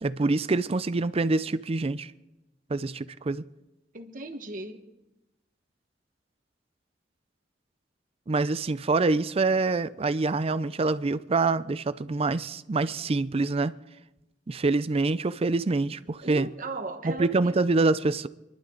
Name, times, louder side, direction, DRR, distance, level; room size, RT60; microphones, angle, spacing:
voice 1, 0.0-2.1 2.7-3.4 8.3-13.7 14.5-16.5 17.0-18.3, right 3 dB, 35° right, 0.5 m, -26 dB
voice 2, 3.9-4.8 16.2-17.6, right 2 dB, 50° right, 1.5 m, -37 dB
26.5 x 11.5 x 3.9 m
head